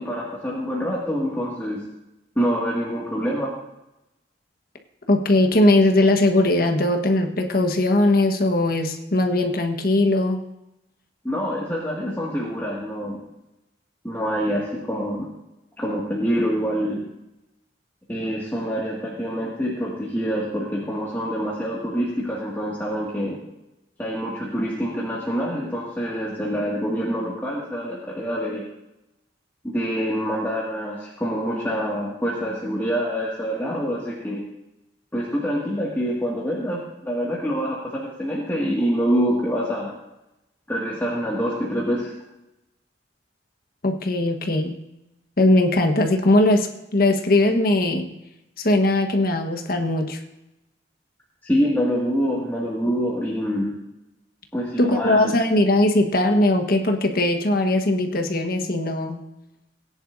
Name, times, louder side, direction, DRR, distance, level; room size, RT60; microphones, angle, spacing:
voice 1, 0.0-1.8 2.4-3.5 11.2-13.2 14.0-15.3 15.8-17.1 18.1-23.4 24.0-28.7 29.6-34.4 35.1-39.9 40.7-42.1 51.4-53.8 54.5-55.2, equal, 10° left, -6 dB, 2.0 m, -26 dB
voice 2, 5.1-10.4 43.8-44.8 45.4-48.1 48.6-50.2 54.8-59.2, left 1 dB, 55° left, 5 dB, 1.4 m, -20 dB
19.0 x 10.5 x 2.7 m, 0.92 s
head